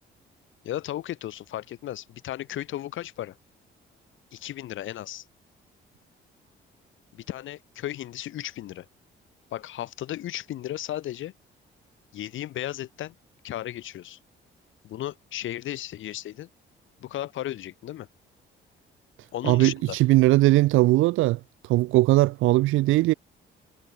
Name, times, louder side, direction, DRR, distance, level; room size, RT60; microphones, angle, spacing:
voice 1, 0.6-3.4 4.3-5.2 7.1-8.9 9.5-11.3 12.1-13.1 13.4-14.2 14.8-16.5 17.0-18.1 19.3-20.0, left 13 dB, 80° left, 3.2 m, -35 dB
voice 2, 19.4-21.4 21.7-23.1, right 18 dB, 85° right, 0.5 m, -19 dB
cardioid pair, 90°, 20 cm